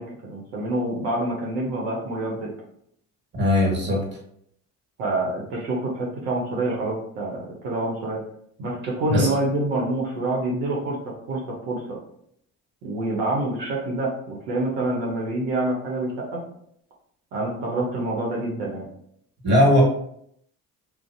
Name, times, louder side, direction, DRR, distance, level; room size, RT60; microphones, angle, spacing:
voice 1, 0.0-2.5 5.0-8.2 8.6-11.4 11.7-12.0 12.8-16.4 17.3-18.9, right 2 dB, 80° right, -3 dB, 0.7 m, -27 dB
voice 2, 3.3-4.1 9.1-9.3 13.6-13.7 19.4-19.8, left 1 dB, 30° right, -2 dB, 1.4 m, -19 dB
2.5 x 2.0 x 2.5 m, 0.70 s
hypercardioid pair, 60°, 38 cm